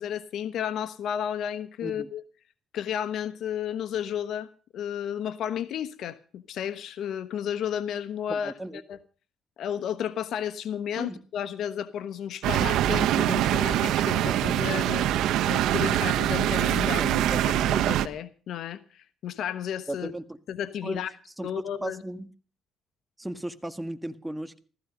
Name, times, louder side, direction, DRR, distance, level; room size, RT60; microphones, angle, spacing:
voice 1, 0.0-2.2 2.7-8.5 8.9-9.0 9.6-15.1 15.5-20.1 20.5-21.1 21.4-22.0, left 9 dB, 75° left, 1.1 m, -33 dB
voice 2, 8.3-8.8 11.0-11.2 19.9-20.4 20.8-21.0 21.4-22.3 23.2-24.6, right 1 dB, 5° right, 1.7 m, -36 dB
sound 1, 12.4-18.1, right 12 dB, 90° right, 0.9 m, -24 dB
15.5 x 14.5 x 5.2 m
cardioid pair, 90°, 0 cm